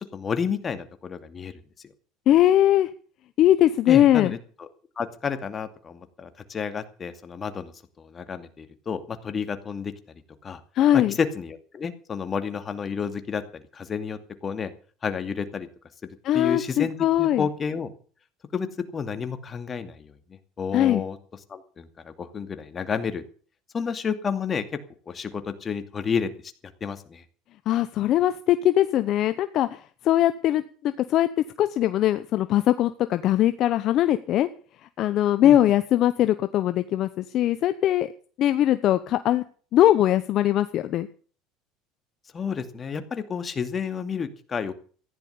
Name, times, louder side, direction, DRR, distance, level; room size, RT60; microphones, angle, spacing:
voice 1, 0.1-1.9 3.9-4.7 5.0-7.7 8.0-9.9 10.4-10.6 10.9-14.7 15.0-15.7 16.3-17.9 18.5-18.7 18.9-21.2 21.5-23.2 23.7-24.8 25.1-26.3 26.8-27.2 35.4-35.6 42.3-44.7, left 6 dB, 30° left, 9 dB, 2.4 m, -31 dB
voice 2, 2.3-2.9 3.4-4.3 10.7-11.1 16.2-17.4 20.7-21.0 27.7-29.8 30.0-31.3 31.6-34.5 35.0-38.1 38.4-39.4 39.7-41.1, left 12 dB, 55° left, 11 dB, 0.9 m, -21 dB
15.0 x 10.5 x 7.1 m, 0.42 s
supercardioid pair, 105°, 0 cm